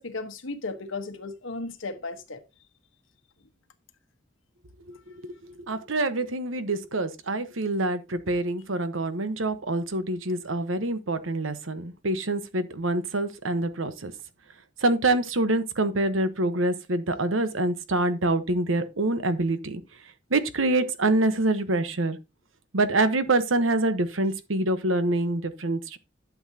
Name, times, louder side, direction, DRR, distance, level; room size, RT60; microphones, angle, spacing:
voice 1, 0.0-2.4, left 3 dB, 85° left, 1.3 m, -35 dB
voice 2, 4.9-5.3 5.7-14.1 14.8-19.8 20.3-22.2 22.7-26.0, right 2 dB, 85° right, 1.1 m, -26 dB
11.5 x 7.2 x 2.8 m
head